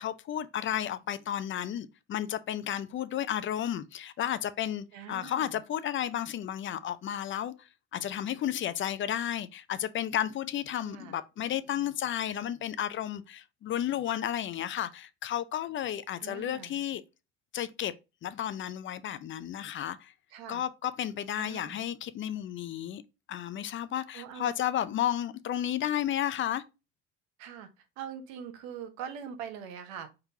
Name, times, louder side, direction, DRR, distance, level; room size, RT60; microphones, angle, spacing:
voice 1, 0.0-17.0 17.5-17.9 18.2-20.1 20.5-23.0 23.3-26.6, left 11 dB, 40° left, 0.5 m, -33 dB
voice 2, 4.9-5.6 10.7-11.2 16.2-16.7 20.3-20.6 21.4-21.8 24.1-24.5 27.4-27.7 28.0-30.1, right 8 dB, 85° right, 1.0 m, -42 dB
4.5 x 3.8 x 2.7 m
supercardioid pair, 95°, 29 cm